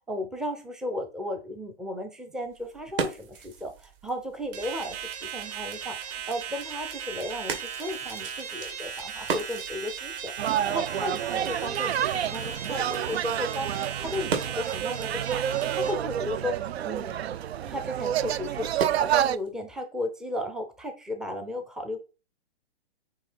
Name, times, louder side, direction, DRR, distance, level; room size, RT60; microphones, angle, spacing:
voice 1, 0.1-16.6 16.8-17.1 17.7-22.0, left 1 dB, ahead, 0.4 m, -35 dB
sound 1, 2.4-19.5, right 5 dB, 60° right, 2.3 m, -40 dB
sound 2, 4.5-15.9, right 8 dB, 40° right, 2.4 m, -37 dB
sound 3, 10.4-19.4, right 10 dB, 75° right, 0.5 m, -29 dB
8.4 x 2.8 x 4.3 m
hypercardioid pair, 130°, 32 cm